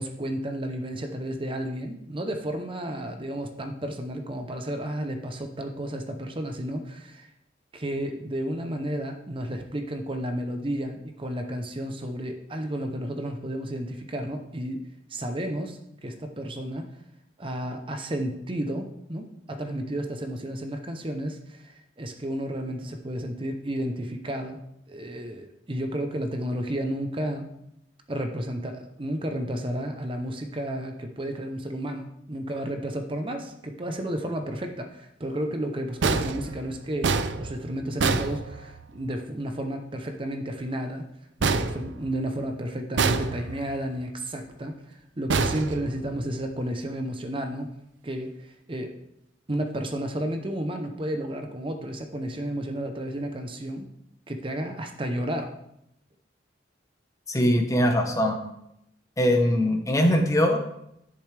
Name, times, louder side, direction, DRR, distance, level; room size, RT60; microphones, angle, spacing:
voice 1, 0.0-7.3 7.7-14.8 15.1-16.9 17.4-24.6 24.9-27.5 28.1-41.1 41.4-47.7 48.0-48.9 49.5-53.9 54.3-55.6, right 1 dB, 30° right, 5 dB, 0.7 m, -32 dB
sound 1, 36.0-39.1 41.4-42.5 43.0-43.8 45.3-46.4, right 4 dB, 75° right, 0.5 m, -27 dB
voice 2, 57.3-58.4 59.2-60.7, equal, 20° left, 4 dB, 0.9 m, -22 dB
11.0 x 6.7 x 3.4 m, 0.79 s
head